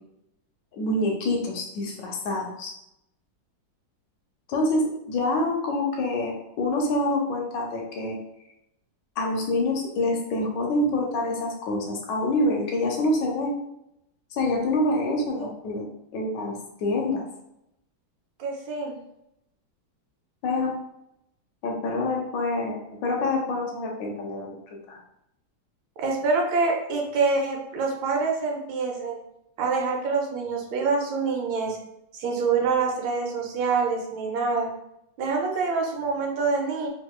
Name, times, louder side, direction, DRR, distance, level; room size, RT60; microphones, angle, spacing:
voice 1, 0.7-2.7 4.5-8.2 9.2-13.5 14.3-15.8 16.1-17.2 20.4-20.7 21.6-25.0, left 2 dB, 75° left, 0 dB, 1.2 m, -26 dB
voice 2, 18.4-18.9 26.0-29.2 29.6-31.8 32.1-34.7 35.2-36.9, right 4 dB, 75° right, 1 dB, 1.4 m, -26 dB
3.5 x 2.8 x 2.2 m, 0.81 s
omnidirectional pair, 2.2 m